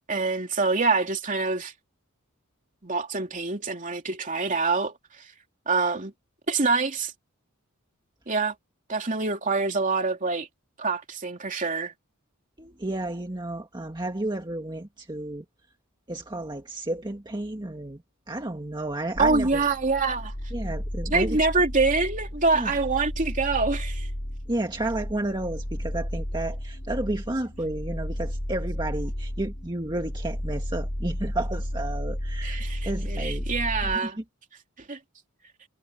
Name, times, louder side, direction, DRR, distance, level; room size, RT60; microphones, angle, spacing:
voice 1, 0.1-1.7 2.8-4.9 5.7-6.1 6.5-7.1 8.3-8.5 8.9-10.5 10.8-11.9 19.2-20.3 21.1-24.1 32.4-34.2 34.9-35.0, right 4 dB, 35° right, 2.9 m, -25 dB
voice 2, 12.6-15.5 16.1-18.0 18.3-19.6 20.5-21.5 22.5-22.7 24.5-33.5 33.8-34.2, right 1 dB, 20° right, 1.8 m, -32 dB
sound 1, 19.1-34.0, equal, 45° left, 3.9 m, -33 dB
head